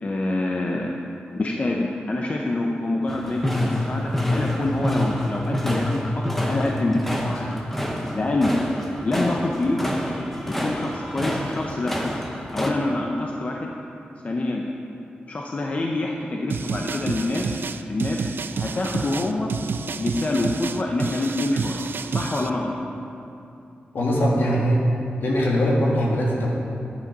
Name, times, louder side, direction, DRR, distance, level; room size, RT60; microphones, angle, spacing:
voice 1, 0.0-0.9 1.3-7.6 8.1-8.6 9.0-9.9 10.4-11.9 12.5-13.7 14.2-14.7 15.3-17.6 17.9-18.3 18.5-19.5 20.0-21.8 22.1-22.9, left 2 dB, 35° left, 0 dB, 0.8 m, -26 dB
sound 1, 3.1-12.7, left 1 dB, 5° left, 1.0 m, -27 dB
sound 2, 16.5-22.5, right 5 dB, 65° right, 0.4 m, -29 dB
voice 2, 23.9-24.8 25.2-26.5, equal, 65° left, -3 dB, 2.2 m, -21 dB
10.5 x 9.4 x 5.4 m, 2.7 s
wide cardioid pair, 145°, 4 cm